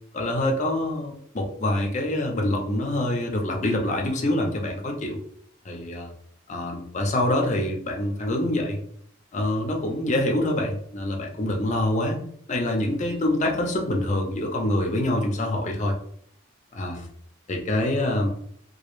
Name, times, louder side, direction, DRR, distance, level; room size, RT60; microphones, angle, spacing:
voice 1, 0.1-5.2 5.6-6.1 6.5-8.8 9.3-12.2 12.5-15.9 16.7-17.1 17.5-18.3, left 1 dB, 35° left, 1 dB, 0.4 m, -25 dB
2.3 x 2.0 x 3.0 m, 0.64 s
head